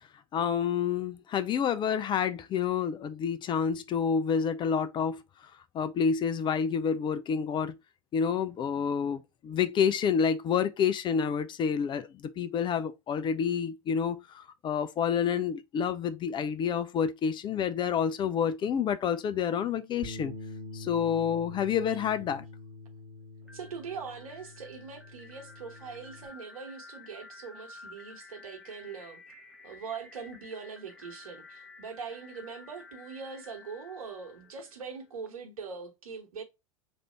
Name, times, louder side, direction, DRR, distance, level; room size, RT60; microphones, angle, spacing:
voice 1, 0.3-5.2 5.7-7.8 8.1-20.3 20.7-22.4, left 7 dB, 25° left, 0.4 m, -28 dB
Bass guitar, 20.0-26.3, left 2 dB, 50° right, 1.1 m, -45 dB
sound 1, 23.4-35.3, left 3 dB, ahead, 0.9 m, -52 dB
voice 2, 23.5-29.2 29.6-36.4, right 5 dB, 70° right, 1.1 m, -42 dB
3.3 x 2.5 x 4.3 m
figure-of-eight pair, 80°, 19 cm